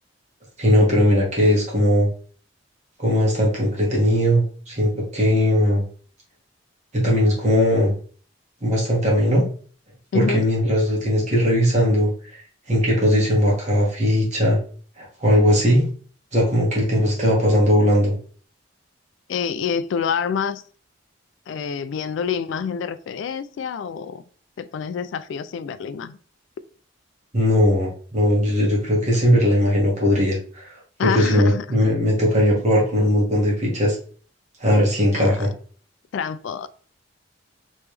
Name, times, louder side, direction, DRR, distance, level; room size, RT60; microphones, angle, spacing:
voice 1, 0.6-2.1 3.0-5.8 6.9-7.9 8.6-9.4 10.1-12.1 12.7-14.6 15.0-15.9 16.3-18.1 27.3-30.7 31.0-34.0 34.6-35.5, equal, 35° right, -3 dB, 1.5 m, -19 dB
voice 2, 10.1-10.5 19.3-20.6 21.5-24.2 24.6-26.2 31.0-31.7 35.1-35.4 36.1-36.7, left 6 dB, 70° left, 12 dB, 0.3 m, -27 dB
3.4 x 3.0 x 3.2 m, 0.43 s
head